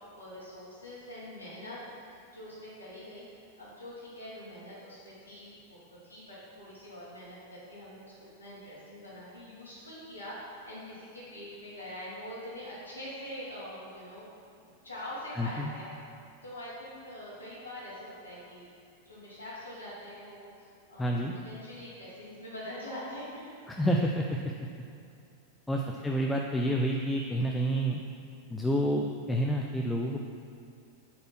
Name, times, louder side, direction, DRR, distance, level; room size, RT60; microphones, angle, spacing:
voice 1, 0.1-14.3 14.6-15.9 16.4-18.7 19.1-23.5 25.8-26.0, left 1 dB, 85° left, -10 dB, 2.1 m, -44 dB
voice 2, 15.3-15.7 21.0-21.3 23.7-24.5 25.7-28.0 28.5-30.2, equal, 5° left, 0 dB, 0.5 m, -29 dB
7.8 x 4.3 x 6.0 m, 2.4 s
figure-of-eight pair, 90°, 0 cm